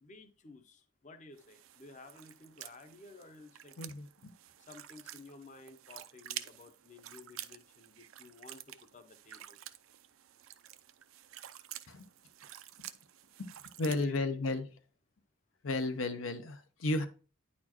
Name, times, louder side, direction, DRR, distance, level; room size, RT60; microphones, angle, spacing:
voice 1, 0.0-3.8 4.6-9.6 13.9-14.5, left 2 dB, 35° left, 9 dB, 0.7 m, -54 dB
sound 1, 1.4-14.0, right 13 dB, 85° right, 0.5 m, -49 dB
voice 2, 3.8-4.3 11.9-12.1 13.4-13.5 13.8-14.7 15.6-17.1, left 2 dB, 80° left, 10 dB, 0.8 m, -33 dB
9.5 x 4.3 x 2.9 m, 0.37 s
head